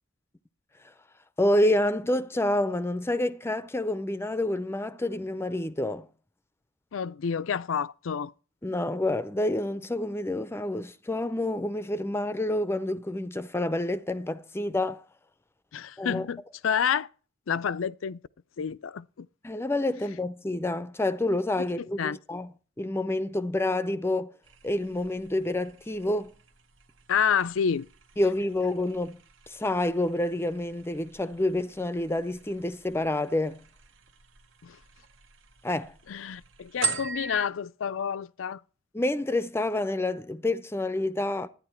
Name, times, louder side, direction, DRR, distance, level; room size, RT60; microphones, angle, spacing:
voice 1, 1.4-6.1 8.6-15.0 16.0-16.3 19.4-22.5 22.8-24.3 24.6-26.3 28.2-29.2 29.5-33.6 35.6-35.9 38.9-41.5, left 1 dB, 15° left, 0.5 m, -28 dB
voice 2, 6.9-8.3 15.7-17.1 17.5-18.2 18.6-19.3 21.6-22.2 27.1-27.9 34.6-34.8 36.1-38.6, left 7 dB, 85° left, 0.5 m, -29 dB
sound 1, 24.4-37.5, right 5 dB, 70° right, 1.1 m, -41 dB
11.5 x 9.8 x 4.4 m
head